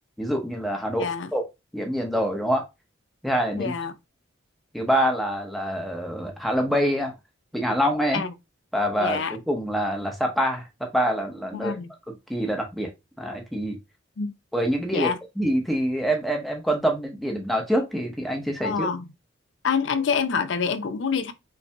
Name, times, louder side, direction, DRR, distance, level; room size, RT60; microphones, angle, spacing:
voice 1, 0.2-1.4 1.7-2.6 3.2-3.7 4.7-7.1 7.5-8.2 8.7-11.8 12.3-12.9 13.2-13.8 14.5-15.1 15.4-18.9, equal, ahead, 0.7 m, -25 dB
voice 2, 1.0-1.3 3.5-3.9 8.1-8.3 9.0-9.4 11.5-11.9 14.2-14.3 14.9-15.2 18.6-19.1 19.6-21.3, left 6 dB, 70° left, 0.5 m, -26 dB
5.4 x 2.7 x 2.2 m
head